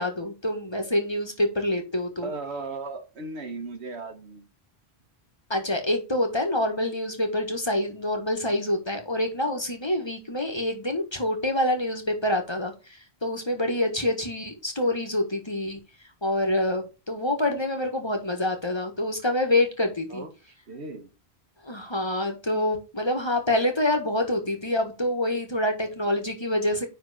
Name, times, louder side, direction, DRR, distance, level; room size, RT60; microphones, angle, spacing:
voice 1, 0.0-2.3 5.5-12.7 13.2-15.8 16.2-20.2 21.6-26.9, left 1 dB, 25° left, 4 dB, 1.6 m, -26 dB
voice 2, 2.2-4.5 13.8-14.1 20.1-20.3 20.7-21.1, right 3 dB, 85° right, 8 dB, 1.5 m, -36 dB
9.8 x 3.6 x 5.0 m, 0.30 s
omnidirectional pair, 1.1 m